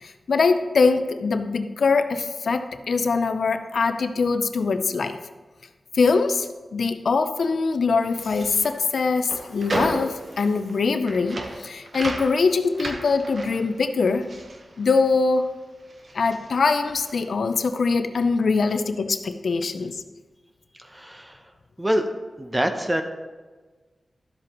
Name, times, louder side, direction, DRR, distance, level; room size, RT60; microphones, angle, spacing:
voice 1, 0.0-5.2 5.9-14.3 14.8-15.5 16.1-20.0, left 4 dB, 80° left, 9 dB, 0.5 m, -23 dB
sound 1, 8.0-15.5 15.8-17.3, right 2 dB, 55° right, 1.0 m, -35 dB
voice 2, 20.8-21.4 21.8-22.0 22.4-23.0, equal, 15° right, 6 dB, 0.8 m, -25 dB
12.5 x 7.6 x 3.0 m, 1.3 s
wide cardioid pair, 125°, 0 cm